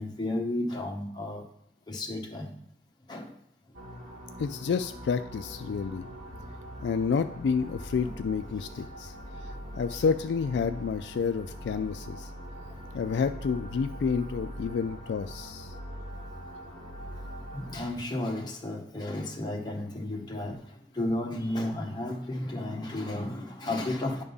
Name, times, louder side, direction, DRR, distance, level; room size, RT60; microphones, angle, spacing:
voice 1, 0.0-1.4 1.9-2.5 3.1-3.3 8.0-8.1 12.7-12.8 17.5-24.2, left 1 dB, 25° left, 0 dB, 0.9 m, -33 dB
sound 1, 3.7-17.8, equal, 85° right, 1.7 m, -42 dB
voice 2, 4.4-6.0 6.8-9.1 9.7-12.3 12.9-15.7, left 5 dB, 70° left, 10 dB, 0.3 m, -29 dB
9.5 x 3.6 x 5.5 m, 0.74 s
head